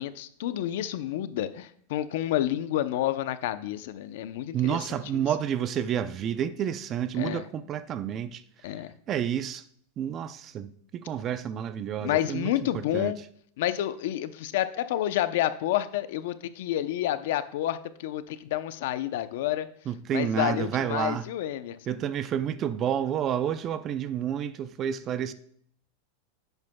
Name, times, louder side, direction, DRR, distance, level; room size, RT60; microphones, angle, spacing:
voice 1, 0.0-5.2 7.2-7.5 8.6-8.9 12.0-13.2 13.6-19.7 20.1-22.0, left 12 dB, 65° left, 0.6 m, -29 dB
voice 2, 4.5-8.4 9.1-9.6 10.0-13.1 19.9-21.3 21.9-25.3, right 9 dB, 30° right, 0.5 m, -30 dB
10.5 x 8.0 x 2.3 m
supercardioid pair, 150°, 0 cm